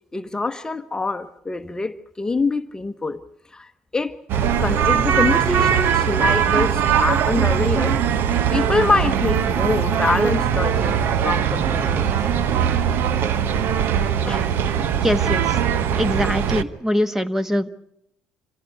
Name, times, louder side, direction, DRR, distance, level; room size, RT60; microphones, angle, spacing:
voice 1, 0.1-3.2 3.5-4.2 4.6-8.0 8.2-12.1 14.3-14.5, left 3 dB, 20° left, 1.0 m, -25 dB
sound 1, 4.3-16.6, right 8 dB, 65° right, 1.1 m, -20 dB
voice 2, 15.0-17.8, left 1 dB, 10° right, 1.3 m, -23 dB
25.5 x 16.5 x 8.4 m
supercardioid pair, 70°, 4 cm